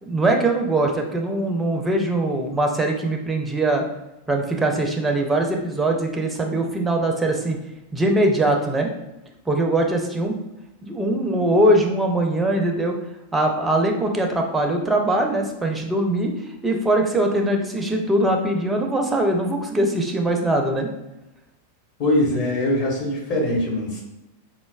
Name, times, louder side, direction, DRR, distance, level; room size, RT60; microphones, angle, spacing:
voice 1, 0.0-3.8 4.3-7.6 7.9-8.9 9.5-10.4 10.8-13.0 13.3-16.3 16.6-20.9, right 1 dB, 10° right, 2 dB, 0.4 m, -21 dB
voice 2, 22.0-24.0, left 1 dB, 40° left, -3 dB, 1.0 m, -22 dB
3.9 x 2.0 x 2.2 m, 0.94 s
figure-of-eight pair, 90°, 0 cm